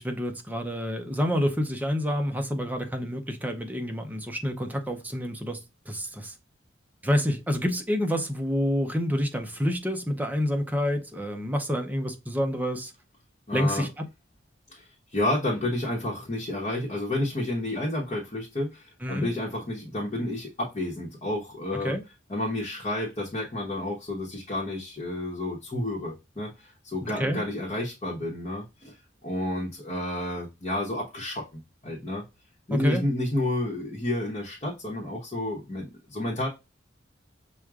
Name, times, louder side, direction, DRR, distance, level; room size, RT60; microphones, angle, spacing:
voice 1, 0.0-5.6 5.9-6.3 7.0-12.9 13.5-14.1 19.0-19.3 21.8-22.0 27.0-27.4 32.7-33.0, equal, 10° right, 0.6 m, -28 dB
voice 2, 13.5-13.9 14.7-22.0 22.3-29.0 29.2-32.2 32.7-36.5, left 1 dB, 35° left, 1.0 m, -30 dB
6.1 x 2.2 x 2.3 m
head